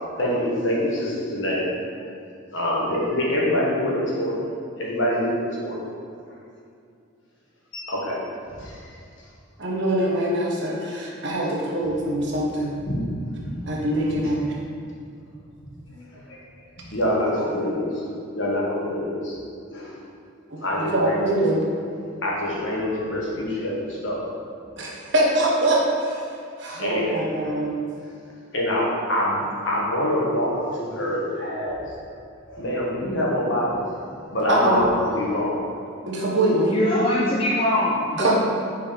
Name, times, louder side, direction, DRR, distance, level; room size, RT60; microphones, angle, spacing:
voice 1, 0.2-1.7 2.5-4.4 4.8-5.9 7.7-8.2 8.6-8.8 12.9-13.0 14.1-14.3 15.9-16.4 16.9-17.9 18.3-19.3 19.7-19.9 20.6-21.3 22.2-24.2 26.8-27.2 28.5-31.8 32.5-33.8 34.3-35.5, left 1 dB, 60° left, -5 dB, 1.6 m, -25 dB
voice 2, 9.6-12.7 13.7-14.4 20.5-21.6 24.8-26.2 26.6-27.7 34.5-34.8 36.1-36.8 38.2-38.4, right 1 dB, 55° right, -3 dB, 1.2 m, -23 dB
voice 3, 36.6-38.4, left 1 dB, 25° left, -5 dB, 0.6 m, -22 dB
5.5 x 4.7 x 5.2 m, 2.4 s
head